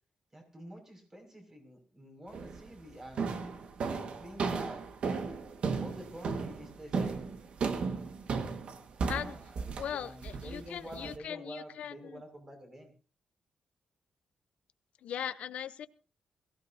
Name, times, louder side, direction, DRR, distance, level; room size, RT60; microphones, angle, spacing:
voice 1, 0.3-3.4 3.8-4.8 5.8-7.3 9.2-12.9, right 1 dB, 25° right, 3 dB, 6.0 m, -48 dB
sound 1, 2.3-2.7 3.2-11.2, right 5 dB, 60° right, 1.7 m, -35 dB
voice 2, 9.8-12.2 15.0-15.9, left 9 dB, 85° left, 12 dB, 0.8 m, -39 dB
22.0 x 16.0 x 2.8 m, 0.36 s
wide cardioid pair, 140°, 2 cm